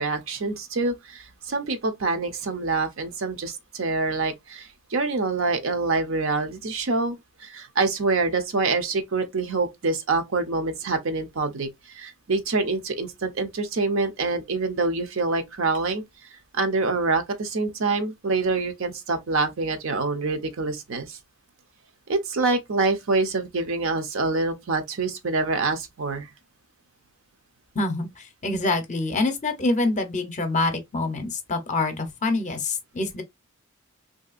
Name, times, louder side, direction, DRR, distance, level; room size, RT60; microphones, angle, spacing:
voice 1, 0.0-16.0 16.3-21.2 22.1-26.3, right 3 dB, 60° right, 0.6 m, -26 dB
voice 2, 27.7-33.2, left 2 dB, 35° left, 0.6 m, -26 dB
3.3 x 2.6 x 2.4 m
head